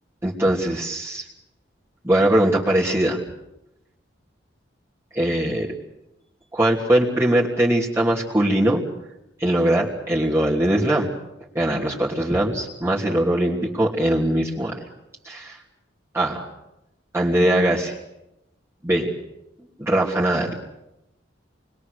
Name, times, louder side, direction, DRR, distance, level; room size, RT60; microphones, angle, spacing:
voice 1, 0.2-1.3 2.0-3.2 5.1-5.7 6.5-8.8 9.4-11.1 11.5-14.7 15.2-15.6 16.1-16.4 17.1-18.0 18.8-19.1 19.8-20.5, right 1 dB, 15° right, -5 dB, 3.1 m, -21 dB
28.0 x 22.0 x 6.8 m, 0.91 s
head